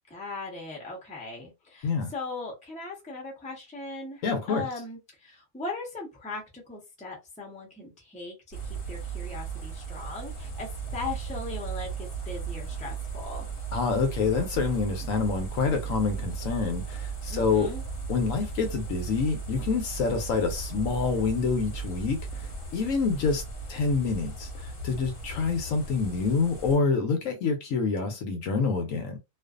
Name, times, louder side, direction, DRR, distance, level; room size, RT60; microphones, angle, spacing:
voice 1, 0.1-13.5 17.3-17.8, left 3 dB, 10° left, 0.5 m, -39 dB
voice 2, 4.2-4.7 13.7-17.7 18.1-23.4 23.7-29.2, left 4 dB, 70° left, 0.9 m, -27 dB
sound 1, 8.5-26.8, right 5 dB, 45° left, 0.9 m, -36 dB
2.5 x 2.3 x 2.3 m
omnidirectional pair, 1.6 m